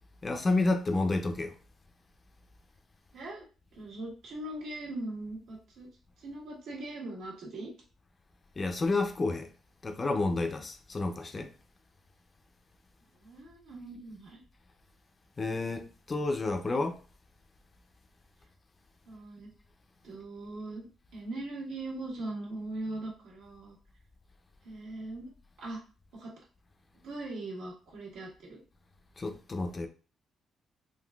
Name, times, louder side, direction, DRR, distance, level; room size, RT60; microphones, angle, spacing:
voice 1, 0.2-1.5 8.6-9.5 9.8-11.5 15.4-17.0 29.2-29.9, left 2 dB, 30° left, 0.5 m, -30 dB
voice 2, 3.1-3.5 3.7-5.9 6.2-7.7 13.2-14.4 19.1-19.5 20.0-20.8 21.1-23.7 24.6-25.3 25.6-25.8 26.1-26.3 27.0-28.6, right 2 dB, 85° right, 1.5 m, -40 dB
3.8 x 2.4 x 2.3 m
cardioid pair, 90°, 0 cm